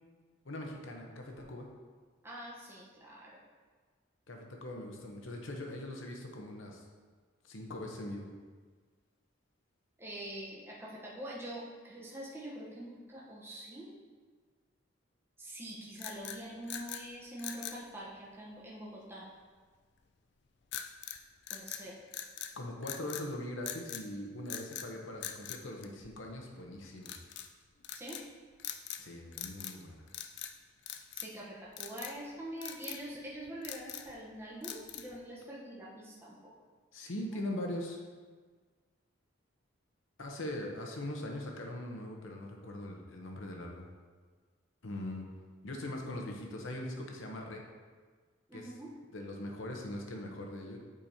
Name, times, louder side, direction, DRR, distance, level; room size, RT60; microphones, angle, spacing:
voice 1, 0.4-1.7 4.3-6.8 7.5-8.3 22.6-27.2 29.0-30.0 36.9-38.0 40.2-43.9 44.8-45.2 45.6-47.6 48.5-48.7 49.1-50.8, left 1 dB, 70° left, 1 dB, 0.9 m, -41 dB
voice 2, 2.2-3.4 10.0-14.0 15.4-19.3 21.5-22.0 27.9-28.2 31.1-36.5 48.5-49.0, right 1 dB, 10° right, -5 dB, 0.9 m, -45 dB
sound 1, 16.0-17.1 17.4-17.8 20.7-21.2 21.5-22.5 22.8-23.3 23.7-24.1 24.5-24.9 25.2-26.4 27.0-27.5 27.8-28.3 28.6-29.1 29.3-29.8 30.1-30.5 30.9-31.4 31.8-32.2 32.6-33.0 33.5-34.1 34.6-35.2, left 10 dB, 55° left, 0.4 m, -42 dB
8.6 x 5.0 x 2.8 m, 1.5 s
head